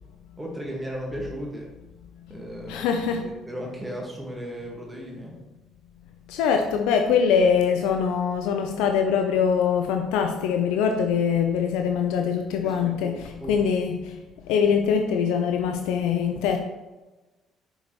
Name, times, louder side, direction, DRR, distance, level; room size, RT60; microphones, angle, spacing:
voice 1, 0.4-1.7 2.3-5.3 12.6-12.7 13.0-13.1 13.4-13.5, equal, 15° right, -1 dB, 1.5 m, -35 dB
voice 2, 2.7-3.3 6.3-14.1 14.5-16.6, left 7 dB, 75° left, 5 dB, 0.5 m, -23 dB
5.9 x 5.5 x 3.0 m, 1.1 s
hypercardioid pair, 55°, 0 cm